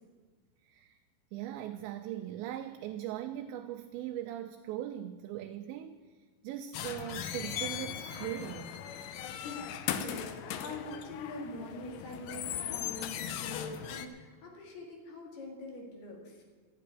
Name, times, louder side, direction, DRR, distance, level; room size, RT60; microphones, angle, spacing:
voice 1, 0.6-1.0 1.3-6.1 6.4-8.7, right 12 dB, 80° right, 7 dB, 2.7 m, -40 dB
sound 1, 6.7-14.1, left 9 dB, 90° left, 2.2 m, -38 dB
voice 2, 9.3-16.4, left 2 dB, 60° left, 1 dB, 3.7 m, -44 dB
12.5 x 8.4 x 9.9 m, 1.5 s
omnidirectional pair, 5.4 m